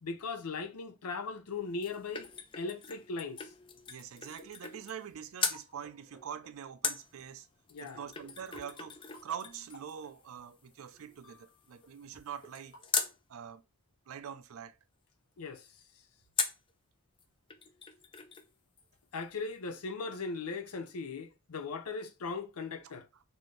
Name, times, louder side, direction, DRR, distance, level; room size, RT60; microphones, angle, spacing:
voice 1, 0.0-2.3 2.5-3.5 7.7-8.0 15.4-15.7 19.1-23.1, left 4 dB, 90° left, 0.6 m, -38 dB
sound 1, 1.5-5.1 5.4-5.6 6.8-13.2 16.4-16.7 17.2-17.3 17.5-18.5 18.8-18.9, left 6 dB, 25° left, 0.3 m, -39 dB
voice 2, 3.9-7.5 7.8-12.7 13.3-13.6 14.1-14.8, right 8 dB, 65° right, 0.4 m, -44 dB
sound 2, 4.8-7.3 7.9-8.0 8.2-12.2 12.4-12.8, equal, 55° left, 1.5 m, -59 dB
4.2 x 2.6 x 3.1 m
head